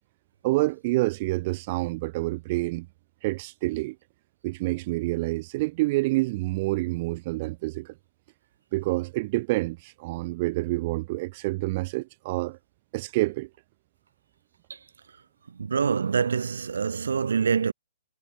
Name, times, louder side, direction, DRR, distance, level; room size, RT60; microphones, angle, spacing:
voice 1, 0.4-2.9 3.2-4.0 4.4-7.9 8.7-12.6 12.9-13.5, right 21 dB, 45° right, 0.9 m, -27 dB
voice 2, 15.5-17.7, right 6 dB, 85° right, 2.0 m, -25 dB
hypercardioid pair, 135°, 0 cm